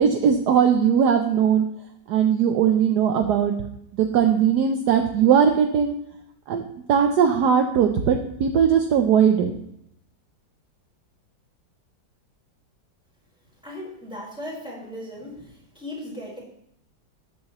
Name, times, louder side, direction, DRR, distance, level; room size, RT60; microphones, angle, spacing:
voice 1, 0.0-1.6 2.1-3.5 4.0-5.9 6.5-9.5, right 8 dB, 65° right, 5 dB, 1.2 m, -19 dB
voice 2, 13.6-16.4, left 1 dB, ahead, -5 dB, 4.3 m, -37 dB
13.0 x 9.5 x 3.1 m, 0.74 s
omnidirectional pair, 2.1 m